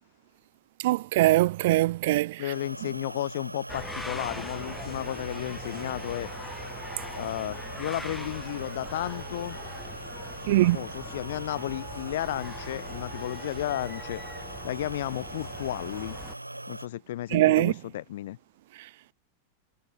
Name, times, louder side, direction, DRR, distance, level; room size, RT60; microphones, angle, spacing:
voice 1, 0.8-2.4 10.5-10.9 17.3-17.7, right 17 dB, 55° right, 1.6 m, -22 dB
voice 2, 2.4-6.3 7.1-9.6 10.5-14.2 14.6-16.2 16.7-18.4, left 14 dB, 55° left, 7.5 m, -33 dB
sound 1, 2.5-16.9, right 2 dB, 85° right, 6.5 m, -41 dB
sound 2, 3.7-16.4, left 2 dB, 5° left, 3.2 m, -42 dB
figure-of-eight pair, 90°, 0 cm